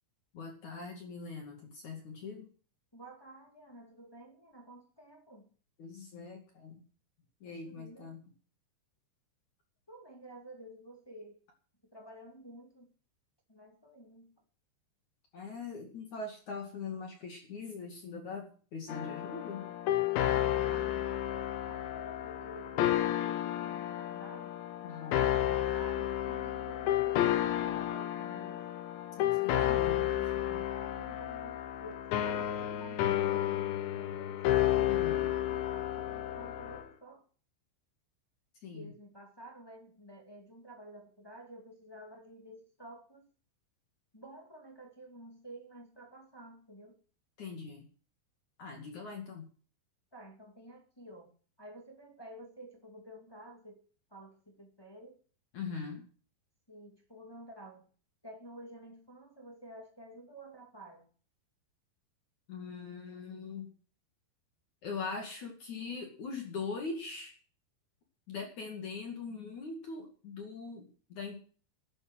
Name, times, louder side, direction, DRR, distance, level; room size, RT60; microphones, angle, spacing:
voice 1, 0.3-2.5 5.8-6.8 7.4-8.2 15.3-19.7 24.8-25.3 29.2-30.6 34.9-35.3 38.6-38.9 47.4-47.9 48.6-49.5 55.5-56.1 62.5-63.7 64.8-67.3 68.3-71.4, left 4 dB, 45° left, 3 dB, 3.0 m, -42 dB
voice 2, 2.9-5.5 7.4-8.1 9.9-11.4 11.9-12.9 13.5-14.3 20.6-24.5 25.2-28.6 29.3-30.3 30.7-34.4 35.0-37.2 38.7-43.2 44.1-47.0 50.1-51.3 51.6-53.8 54.1-55.2 56.7-57.9 58.2-61.1, right 1 dB, 15° left, 1 dB, 0.8 m, -51 dB
sound 1, 18.9-36.9, left 12 dB, 75° left, 3.4 m, -31 dB
12.5 x 10.5 x 6.2 m, 0.41 s
omnidirectional pair, 5.5 m